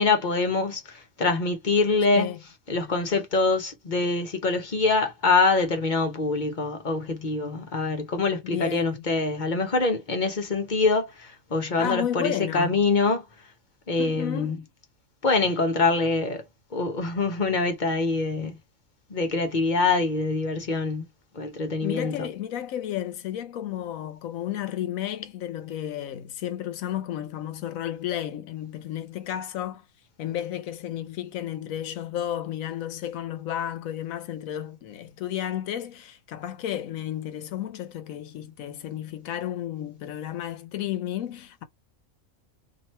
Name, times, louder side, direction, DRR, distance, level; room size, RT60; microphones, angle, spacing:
voice 1, 0.0-2.3 2.7-13.2 13.9-14.6 15.2-16.4 16.7-18.6 19.1-21.0 21.3-22.1, left 3 dB, 40° left, 0.9 m, -24 dB
voice 2, 8.4-9.0 11.8-12.8 14.0-14.7 21.8-29.8 30.2-41.7, left 11 dB, 85° left, 1.1 m, -32 dB
3.0 x 2.8 x 4.2 m
omnidirectional pair, 1.4 m